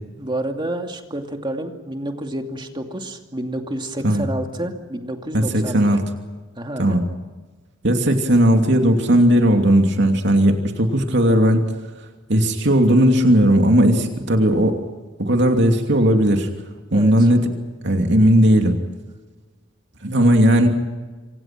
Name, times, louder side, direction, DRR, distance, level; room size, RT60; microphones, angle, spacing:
voice 1, 0.2-6.0 6.6-7.0 16.9-17.3, right 1 dB, 25° right, 4 dB, 2.6 m, -29 dB
voice 2, 5.3-6.0 6.8-7.0 7.8-11.6 12.3-14.8 15.2-16.5 16.9-17.5 17.8-18.7 20.0-20.7, equal, 65° right, 3 dB, 2.8 m, -16 dB
27.0 x 26.5 x 6.1 m, 1.3 s
head